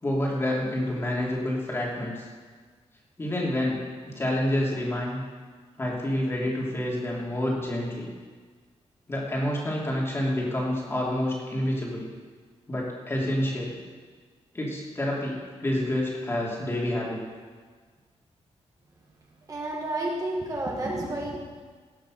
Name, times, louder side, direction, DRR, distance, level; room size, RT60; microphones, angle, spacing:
voice 1, 0.0-2.3 3.2-5.2 5.8-8.1 9.1-12.1 12.7-13.8 14.5-17.2, left 1 dB, 20° left, -3 dB, 3.0 m, -28 dB
voice 2, 19.5-21.4, right 1 dB, 30° right, -2 dB, 1.9 m, -30 dB
17.5 x 6.6 x 6.4 m, 1.5 s
wide cardioid pair, 145°, 12 cm